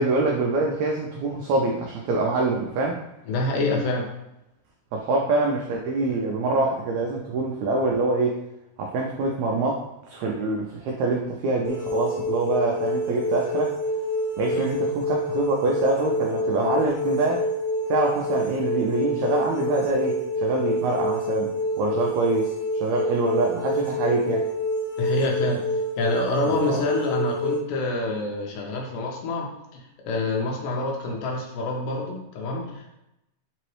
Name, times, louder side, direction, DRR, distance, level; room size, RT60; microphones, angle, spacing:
voice 1, 0.0-3.0 4.9-8.4 8.8-13.8 14.4-17.5 17.9-24.5 26.7-26.9, right 2 dB, 90° right, 0 dB, 1.6 m, -25 dB
voice 2, 3.3-4.1 14.5-14.7 25.0-25.6 26.0-33.0, left 2 dB, 90° left, 0 dB, 2.4 m, -27 dB
sound 1, 11.6-27.6, left 1 dB, 45° left, 1.6 m, -27 dB
5.4 x 3.0 x 3.0 m, 0.87 s
omnidirectional pair, 3.9 m